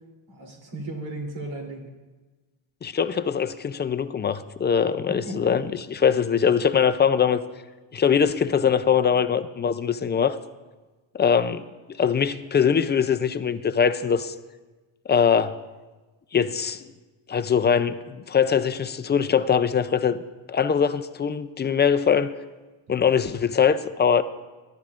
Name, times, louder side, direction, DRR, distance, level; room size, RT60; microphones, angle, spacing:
voice 1, 0.3-1.9 5.1-5.5, right 1 dB, 85° right, 1 dB, 3.2 m, -35 dB
voice 2, 2.8-7.4 7.9-10.4 11.1-11.6 12.0-14.3 15.1-15.5 16.3-16.8 17.3-20.2 20.5-22.3 22.9-24.2, left 7 dB, 25° left, 11 dB, 0.4 m, -22 dB
22.0 x 11.5 x 2.5 m, 1.2 s
cardioid pair, 125°, 47 cm